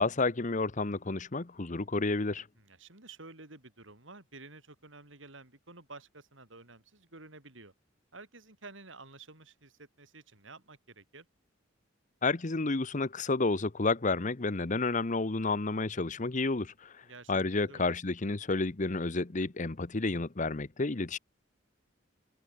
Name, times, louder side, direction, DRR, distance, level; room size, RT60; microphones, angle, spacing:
voice 1, 0.0-2.5 12.2-17.0 17.3-21.2, left 3 dB, 40° left, 1.0 m, -30 dB
voice 2, 2.6-7.7 8.1-11.3 17.0-17.9, right 3 dB, 75° right, 5.6 m, -51 dB
head